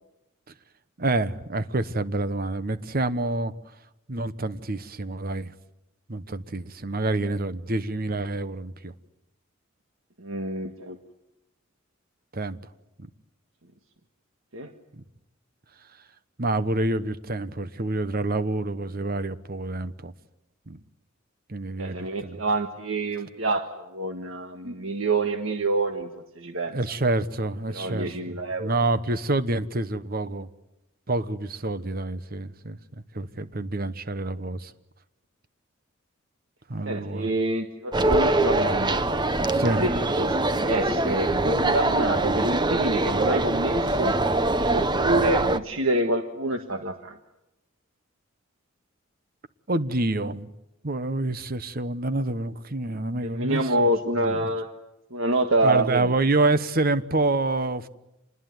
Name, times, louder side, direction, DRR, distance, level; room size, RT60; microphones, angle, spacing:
voice 1, 1.0-3.5 4.1-5.5 6.1-8.9 12.3-12.6 14.9-15.0 16.4-20.1 20.7-20.8 21.5-22.4 26.7-30.5 31.1-32.8 33.1-34.7 36.7-37.3 39.5-39.8 49.7-50.5 50.8-53.9 54.2-54.5 55.6-57.9, right 2 dB, 45° right, 1.1 m, -27 dB
voice 2, 10.2-11.0 14.5-14.7 21.8-26.1 26.3-26.8 27.7-28.7 36.9-39.0 39.6-44.1 44.7-47.1 53.3-54.7 55.1-56.1, right 2 dB, 75° right, 1.6 m, -27 dB
sound 1, 37.9-45.6, right 2 dB, 20° right, 0.9 m, -23 dB
27.5 x 21.0 x 9.6 m
head